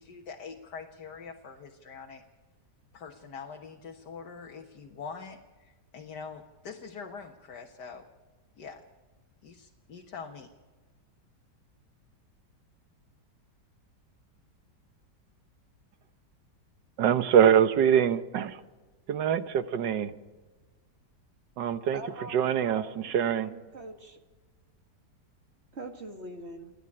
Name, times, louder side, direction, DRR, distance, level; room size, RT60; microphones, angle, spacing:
voice 1, 0.0-2.2 2.9-8.1 8.6-8.8 9.4-10.5, left 5 dB, 70° left, 2 dB, 1.9 m, -44 dB
voice 2, 17.0-18.6 19.1-20.1 21.6-23.5, right 9 dB, 90° right, 12 dB, 1.7 m, -24 dB
voice 3, 21.9-24.2 25.7-26.7, right 2 dB, 40° right, 5 dB, 2.2 m, -43 dB
29.5 x 11.0 x 8.7 m, 1.3 s
omnidirectional pair, 1.9 m